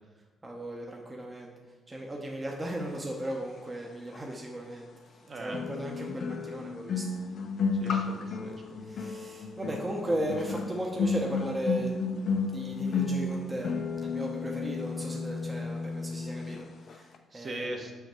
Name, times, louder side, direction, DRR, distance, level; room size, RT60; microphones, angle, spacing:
voice 1, 0.4-1.5 1.9-4.9 5.4-7.0 8.8-13.7 14.0-17.7, right 1 dB, 20° right, -1 dB, 0.9 m, -36 dB
sound 1, 4.1-4.2 5.5-16.6 16.9-17.1, left 4 dB, 60° left, 0.6 m, -32 dB
voice 2, 5.2-5.6 7.8-8.8 17.3-17.9, right 1 dB, 40° right, 2 dB, 1.1 m, -39 dB
5.8 x 5.7 x 4.4 m, 1.3 s
cardioid pair, 90°, 0 cm